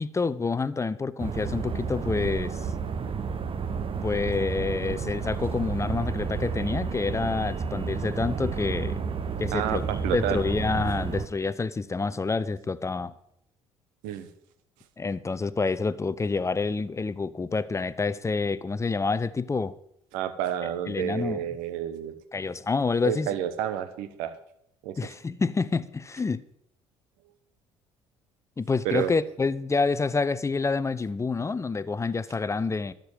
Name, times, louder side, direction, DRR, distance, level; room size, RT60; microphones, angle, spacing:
voice 1, 0.0-2.7 4.0-9.0 9.4-9.8 10.1-13.1 15.0-19.7 20.9-21.4 22.3-23.3 25.0-26.4 28.6-32.9, left 4 dB, 20° left, 0.7 m, -28 dB
sound 1, 1.2-11.3, right 5 dB, 40° right, 1.0 m, -31 dB
voice 2, 9.5-10.4 14.0-14.3 20.1-22.1 23.0-24.3 24.8-25.0 28.8-29.1, right 10 dB, 70° right, 1.1 m, -30 dB
12.0 x 5.3 x 8.0 m
hypercardioid pair, 55°, 14 cm